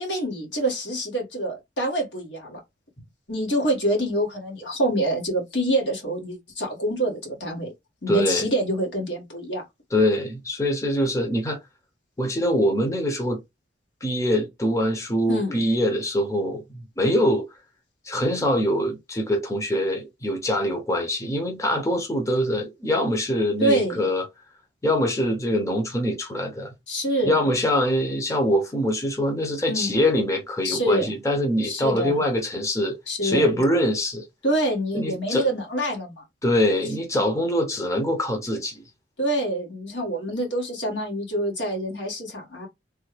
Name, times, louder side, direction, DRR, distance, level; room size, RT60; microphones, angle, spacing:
voice 1, 0.0-2.6 3.3-7.7 8.0-9.6 15.3-15.6 23.6-24.1 26.9-27.4 29.7-29.9 30.6-31.1 31.6-32.2 33.1-33.6 34.4-36.2 39.2-42.7, right 1 dB, 75° left, 1.7 m, -26 dB
voice 2, 8.1-8.4 9.9-11.6 12.2-13.4 14.0-17.5 18.0-24.3 24.8-26.7 27.2-34.2 34.9-35.5 36.4-38.8, equal, 15° left, 0.7 m, -24 dB
3.3 x 2.2 x 3.2 m
head